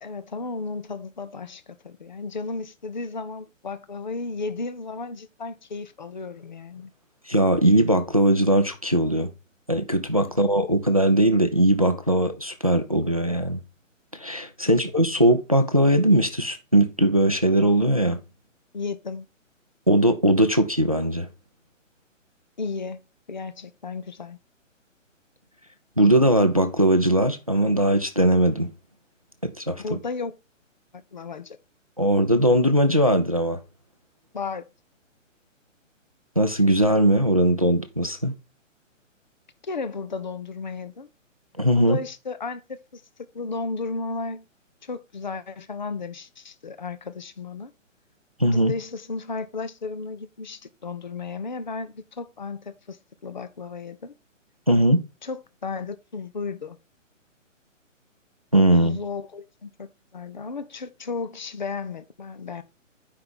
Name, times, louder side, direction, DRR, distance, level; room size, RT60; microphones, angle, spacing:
voice 1, 0.0-6.9 14.7-14.8 18.7-19.2 22.6-23.0 23.3-24.4 29.8-30.3 30.9-31.6 34.3-34.6 39.6-41.1 41.8-43.0 43.3-44.4 44.8-47.7 48.5-54.1 55.2-56.8 58.8-62.6, left 4 dB, 35° left, 0.5 m, -34 dB
voice 2, 7.3-9.3 9.7-13.6 14.1-18.2 19.9-21.3 26.0-28.7 29.4-29.8 32.0-33.6 36.4-38.3 41.6-42.0 48.4-48.7 54.7-55.0 58.5-59.0, right 1 dB, 30° right, 0.4 m, -20 dB
8.5 x 5.3 x 3.6 m
hypercardioid pair, 175°, 39 cm